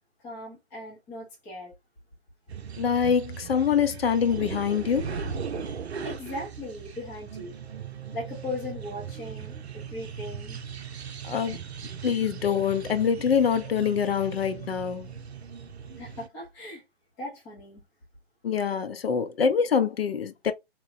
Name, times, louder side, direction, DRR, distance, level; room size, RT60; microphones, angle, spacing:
voice 1, 0.2-1.7 6.0-7.5 8.1-10.6 16.0-16.8 17.2-17.8, left 2 dB, 5° left, 0.3 m, -38 dB
sound 1, 2.5-16.3, right 6 dB, 85° right, 0.6 m, -38 dB
voice 2, 2.8-5.1 11.2-11.6 12.0-15.1 18.4-20.5, left 7 dB, 65° left, 0.6 m, -25 dB
2.9 x 2.0 x 2.6 m
figure-of-eight pair, 130°, 32 cm